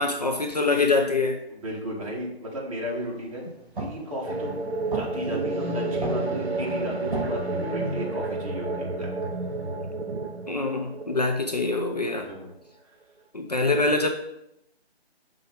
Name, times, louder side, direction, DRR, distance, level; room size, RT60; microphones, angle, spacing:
voice 1, 0.0-1.4 10.5-12.3 13.3-14.1, left 3 dB, 40° left, 4 dB, 0.5 m, -24 dB
voice 2, 1.5-3.4 3.8-4.6 4.9-9.1 12.2-12.5, equal, 30° right, -3 dB, 1.6 m, -34 dB
sound 1, 2.8-8.0, right 3 dB, 55° right, 2.2 m, -39 dB
sound 2, 4.3-12.2, right 2 dB, 80° right, 0.8 m, -30 dB
5.7 x 3.7 x 5.1 m, 0.82 s
figure-of-eight pair, 155°, 32 cm